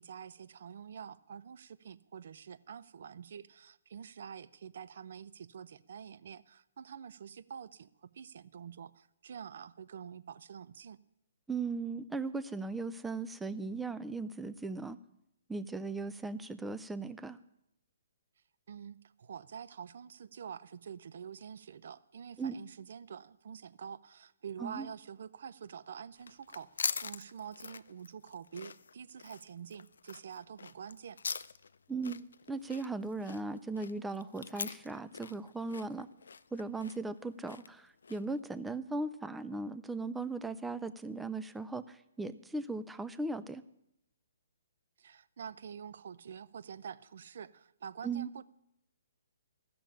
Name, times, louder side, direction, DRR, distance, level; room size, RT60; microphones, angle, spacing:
voice 1, 0.0-11.0 18.7-26.7 27.0-31.2 45.0-48.4, right 7 dB, 65° right, 16 dB, 0.6 m, -47 dB
voice 2, 11.5-15.0 15.5-17.4 22.4-22.5 24.6-24.9 31.9-36.1 36.5-43.6 48.0-48.3, right 3 dB, 5° right, 13 dB, 0.4 m, -38 dB
sound 1, 26.1-38.4, left 5 dB, 80° left, 0.5 m, -43 dB
14.5 x 6.9 x 10.0 m, 0.82 s
hypercardioid pair, 145°, 0 cm